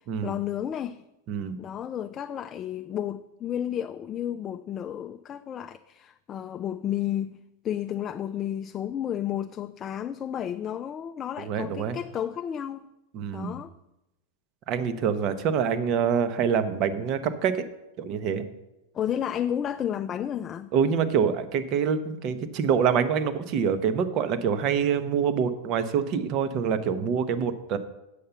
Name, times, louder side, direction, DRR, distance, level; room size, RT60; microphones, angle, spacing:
voice 1, 0.2-1.0 1.6-7.4 7.6-12.9 13.3-13.7 18.9-20.7, left 10 dB, 30° left, 0.3 m, -32 dB
voice 2, 1.3-1.6 11.4-12.0 13.1-13.5 14.7-17.6 18.0-18.4 20.7-27.8, right 7 dB, 45° right, 0.9 m, -26 dB
8.3 x 5.7 x 6.8 m
hypercardioid pair, 125°, 0 cm